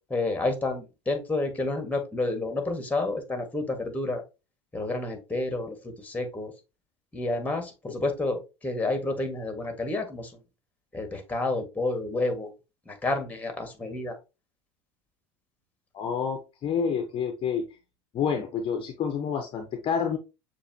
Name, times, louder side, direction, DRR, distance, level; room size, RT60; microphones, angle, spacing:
voice 1, 0.1-4.2 4.7-5.8 6.0-6.5 7.1-10.3 10.9-12.5 12.9-14.2, left 2 dB, 10° left, 6 dB, 1.4 m, -29 dB
voice 2, 15.9-17.7 18.1-20.2, left 6 dB, 40° left, 5 dB, 0.7 m, -28 dB
6.8 x 2.6 x 2.7 m, 0.27 s
hypercardioid pair, 80°, 14 cm